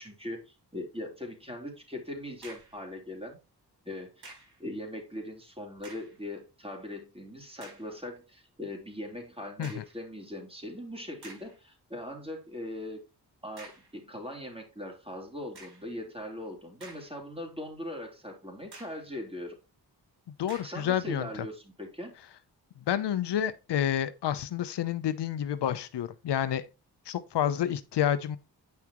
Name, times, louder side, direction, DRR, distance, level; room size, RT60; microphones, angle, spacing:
voice 1, 0.0-3.4 3.8-13.0 13.4-19.6 20.6-22.1, left 1 dB, 15° right, 3.7 m, -40 dB
sound 1, 2.4-2.8 4.2-4.6 5.7-6.2 6.8-6.9 7.6-7.9 9.6-10.0 10.7-10.8 11.2-11.6 13.6-14.0 15.5-15.9 16.5-17.4 17.8-17.9 18.7-19.1 20.5-20.9, right 2 dB, 70° right, 4.8 m, -50 dB
voice 2, 20.4-21.4 22.9-26.6 27.1-28.4, left 10 dB, 85° left, 0.7 m, -29 dB
9.6 x 5.9 x 3.0 m
cardioid pair, 45°, 40 cm